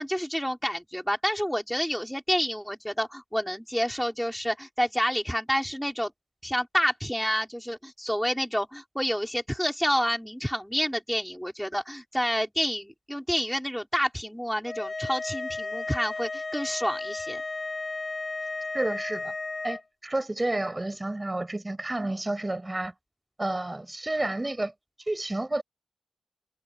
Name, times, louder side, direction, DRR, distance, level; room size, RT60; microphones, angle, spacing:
voice 1, 0.0-6.1 6.4-17.4, equal, ahead, 5.7 m, -29 dB
sound 1, 14.7-19.8, left 3 dB, 40° left, 5.0 m, -34 dB
voice 2, 18.7-19.3 19.6-22.9 23.4-24.7 25.1-25.6, right 2 dB, 25° right, 7.2 m, -30 dB
cardioid pair, 45°, 0 cm